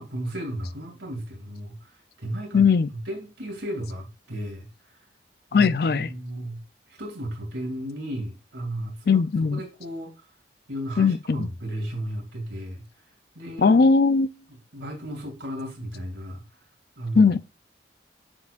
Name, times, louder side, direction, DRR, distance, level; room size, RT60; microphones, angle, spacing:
voice 1, 0.0-2.7 2.9-5.0 5.5-6.6 6.9-9.2 9.5-10.1 10.7-13.0 13.3-13.9 14.7-16.4 17.0-17.3, right 1 dB, 90° right, 2.4 m, -34 dB
voice 2, 2.5-2.9 5.5-6.1 9.1-9.6 11.0-11.5 13.6-14.3 17.2-17.4, left 5 dB, 55° left, 0.4 m, -19 dB
7.5 x 6.1 x 2.4 m
head